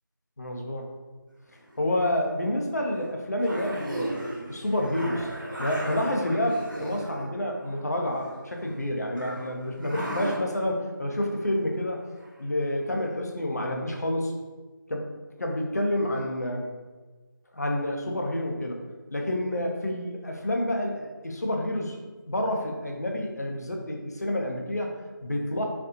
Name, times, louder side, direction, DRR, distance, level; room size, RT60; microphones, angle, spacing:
voice 1, 0.4-0.9 1.8-4.2 4.5-5.3 5.6-12.0 12.4-14.3 14.9-15.1 15.4-16.7 17.5-18.8 19.1-22.0 22.3-25.6, left 1 dB, 50° left, 1 dB, 0.6 m, -29 dB
sound 1, 1.7-2.1 2.9-3.0 3.4-7.2 7.6-8.8 9.1-10.4 12.2-12.3 12.7-12.8, right 1 dB, 65° right, 1.1 m, -37 dB
4.1 x 2.6 x 2.7 m, 1.3 s
figure-of-eight pair, 175°, 11 cm